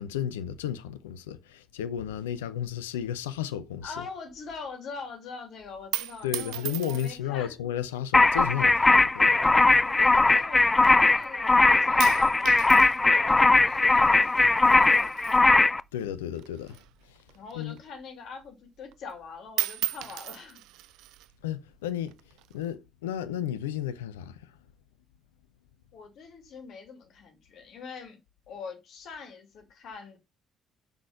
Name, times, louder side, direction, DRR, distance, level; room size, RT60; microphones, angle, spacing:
voice 1, 0.0-3.9 6.2-9.3 15.9-16.8 17.5-17.8 21.4-22.1 22.5-24.4, left 10 dB, 75° left, 0.7 m, -33 dB
voice 2, 3.8-7.6 9.8-12.7 13.1-15.4 17.3-20.6 25.9-28.2 28.5-30.2, left 5 dB, 55° left, 2.8 m, -43 dB
sound 1, 5.7-7.4 8.2-8.7 9.5-10.9 11.2-11.6 12.0-16.1 16.3-18.0 18.4-18.5 18.8-19.2 19.5-21.3 22.1-22.7, right 15 dB, 60° right, 0.5 m, -37 dB
sound 2, 8.1-15.8, left 3 dB, 20° left, 0.4 m, -20 dB
6.9 x 6.3 x 5.6 m
figure-of-eight pair, 45°, 0 cm